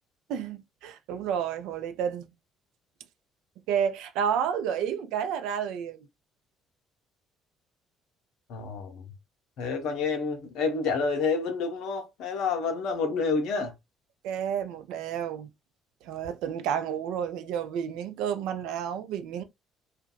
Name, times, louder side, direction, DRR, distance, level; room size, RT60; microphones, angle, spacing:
voice 1, 0.3-2.3 3.7-6.0 14.2-15.5 16.0-19.4, right 8 dB, 65° right, 0.4 m, -30 dB
voice 2, 8.5-9.1 9.6-13.7, left 4 dB, 65° left, 0.7 m, -29 dB
2.7 x 2.2 x 2.3 m
figure-of-eight pair, 50°, 0 cm